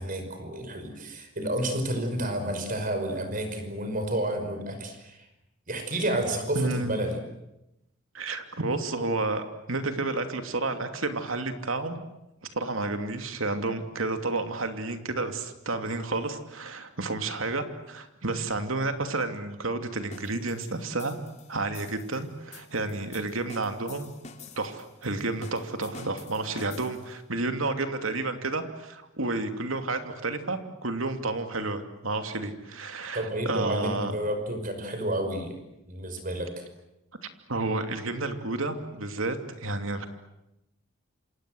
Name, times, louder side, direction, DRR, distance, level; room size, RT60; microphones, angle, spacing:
voice 1, 0.0-5.3 5.7-7.2 33.1-35.6 35.9-36.6, right 1 dB, 45° right, 7 dB, 5.5 m, -30 dB
voice 2, 6.5-7.0 8.1-9.4 9.7-12.0 12.5-21.2 21.5-24.1 24.6-34.1 37.5-40.1, right 2 dB, 90° right, 7 dB, 2.8 m, -31 dB
sound 1, 20.1-27.2, left 5 dB, 35° left, 3.1 m, -49 dB
28.5 x 26.5 x 7.9 m, 0.90 s
head